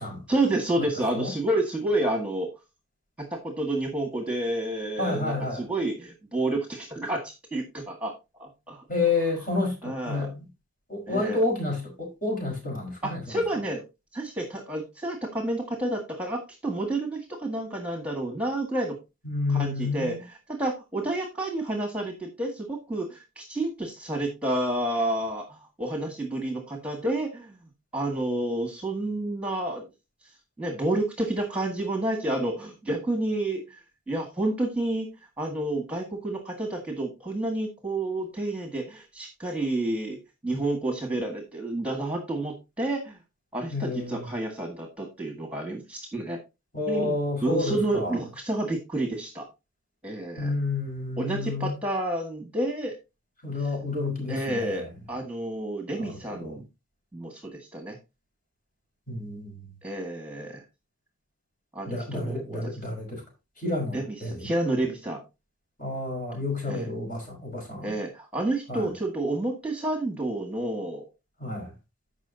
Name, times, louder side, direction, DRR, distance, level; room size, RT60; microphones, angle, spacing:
voice 1, 0.3-2.5 3.2-8.1 8.4-8.9 9.8-10.3 11.1-11.4 13.0-13.8 14.1-19.0 19.5-27.6 27.9-29.9 30.6-33.8 34.1-35.1 35.4-43.2 43.5-46.4 46.9-49.4 50.0-50.5 51.2-53.0 53.6-53.7 54.3-56.7 57.1-58.0 59.8-60.6 61.7-62.8 63.9-65.2 66.7-66.9 67.8-71.0, right 1 dB, 5° right, 1.8 m, -30 dB
voice 2, 5.0-5.6 8.9-10.4 10.9-13.4 19.2-20.2 43.7-44.3 46.7-48.2 50.4-51.7 53.4-54.8 56.0-56.6 59.1-59.5 61.9-63.2 63.6-64.5 65.8-67.9 68.7-68.9 71.4-71.7, left 3 dB, 40° left, 5.2 m, -30 dB
15.0 x 5.7 x 2.8 m
head